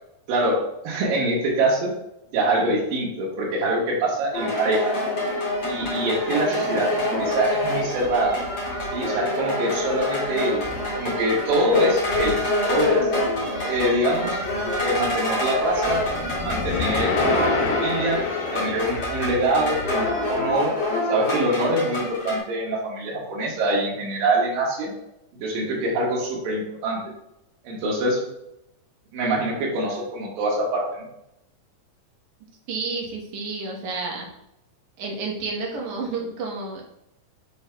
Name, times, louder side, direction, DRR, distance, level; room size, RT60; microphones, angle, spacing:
voice 1, 0.3-1.9 2.3-5.0 5.7-8.4 8.9-13.1 13.6-14.4 14.8-16.0 16.4-18.2 18.5-20.7 21.1-24.9 25.4-27.0 27.6-28.2 29.1-31.0, right 1 dB, 85° right, -3 dB, 3.0 m, -24 dB
sound 1, 4.3-22.4, left 1 dB, 40° left, 3.0 m, -26 dB
sound 2, 15.7-20.1, left 5 dB, 80° left, 2.4 m, -28 dB
voice 2, 32.7-34.3 35.0-36.8, right 3 dB, 65° right, -1 dB, 2.3 m, -30 dB
10.5 x 4.4 x 2.2 m, 0.82 s
omnidirectional pair, 3.9 m